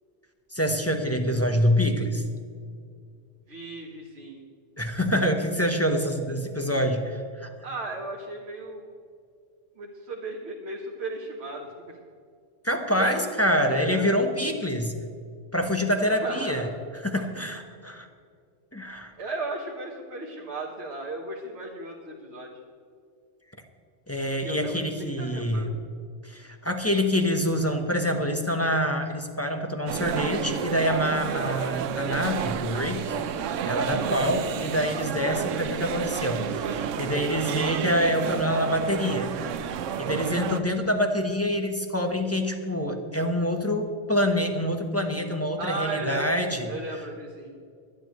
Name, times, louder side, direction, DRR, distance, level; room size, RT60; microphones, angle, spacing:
voice 1, 0.5-2.2 4.8-7.5 12.6-14.9 15.5-16.7 17.0-18.1 18.7-19.1 24.1-25.7 26.2-33.2 33.6-39.3 40.0-46.7, equal, 15° left, 4 dB, 1.0 m, -26 dB
voice 2, 3.5-4.4 7.6-8.9 9.7-12.0 12.9-14.1 15.9-16.8 17.2-17.3 19.2-22.6 24.4-25.7 33.9-34.2 45.6-46.3 46.7-47.5, right 2 dB, 60° right, -1 dB, 1.6 m, -36 dB
sound 1, 29.9-40.6, right 8 dB, 85° right, 1.0 m, -30 dB
24.5 x 10.0 x 3.1 m, 2.3 s
omnidirectional pair, 1.3 m